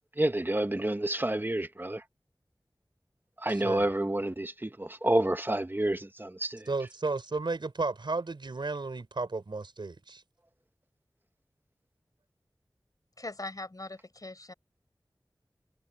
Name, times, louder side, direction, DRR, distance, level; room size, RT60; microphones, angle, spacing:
voice 1, 0.2-2.0 3.4-6.7, right 1 dB, 25° right, 1.1 m, -29 dB
voice 2, 6.7-10.2, right 3 dB, 90° right, 5.3 m, -33 dB
voice 3, 13.2-14.5, left 2 dB, 50° left, 4.6 m, -41 dB
wide cardioid pair, 50°, 8 cm